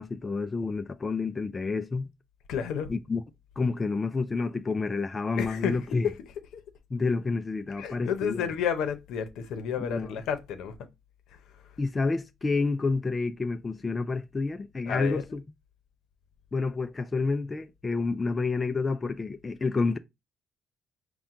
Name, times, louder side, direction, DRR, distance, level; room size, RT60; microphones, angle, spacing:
voice 1, 0.0-2.1 2.9-3.2 3.6-6.1 6.9-8.5 9.8-10.2 11.8-15.4 16.5-20.0, left 4 dB, 25° left, 0.3 m, -29 dB
voice 2, 2.5-2.9 5.4-5.7 6.5-6.6 7.8-10.7 14.9-15.2, left 7 dB, 85° left, 0.7 m, -31 dB
4.3 x 2.2 x 3.6 m
cardioid pair, 90°, 0 cm